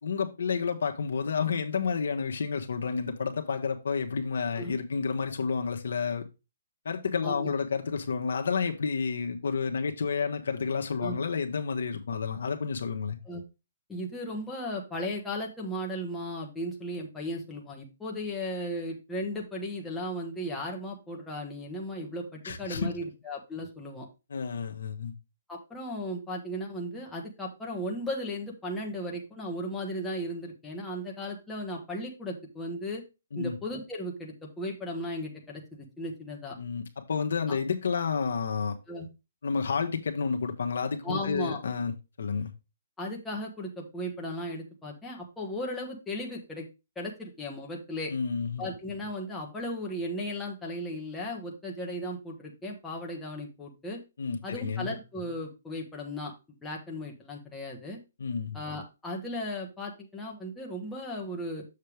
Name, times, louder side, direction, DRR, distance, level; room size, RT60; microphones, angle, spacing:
voice 1, 0.0-6.2 6.8-13.2 22.4-22.9 24.3-25.1 33.3-33.6 36.6-38.8 39.4-41.9 42.2-42.5 48.1-48.7 54.2-54.9 58.2-58.6, left 5 dB, 75° left, 1.2 m, -30 dB
voice 2, 7.2-7.5 11.0-11.2 13.3-13.4 13.9-24.1 25.5-33.0 33.3-36.6 37.5-37.6 38.9-39.1 41.0-41.6 43.0-46.7 46.9-48.1 48.6-54.0 54.4-56.3 56.6-58.0 58.5-61.6, left 1 dB, 5° left, 1.2 m, -36 dB
6.8 x 6.5 x 3.4 m
hypercardioid pair, 160°, 0 cm